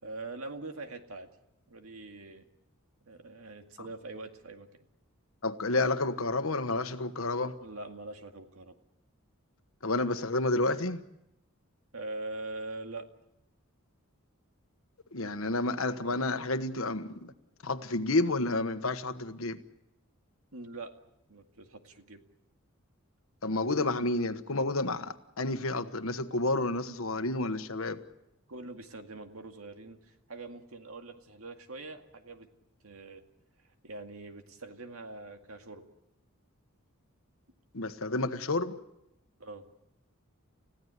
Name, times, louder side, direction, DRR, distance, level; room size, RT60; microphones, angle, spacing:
voice 1, 0.0-1.3 1.7-2.5 3.0-4.8 7.6-8.8 11.9-13.1 20.5-20.9 21.3-22.2 28.5-32.5 32.8-33.2 33.8-35.8 39.4-39.7, right 2 dB, 80° right, 2.1 m, -43 dB
voice 2, 5.4-7.5 9.8-11.0 15.1-17.3 17.6-19.6 23.4-28.0 37.7-38.8, left 2 dB, 70° left, 1.3 m, -30 dB
30.0 x 16.0 x 8.2 m
head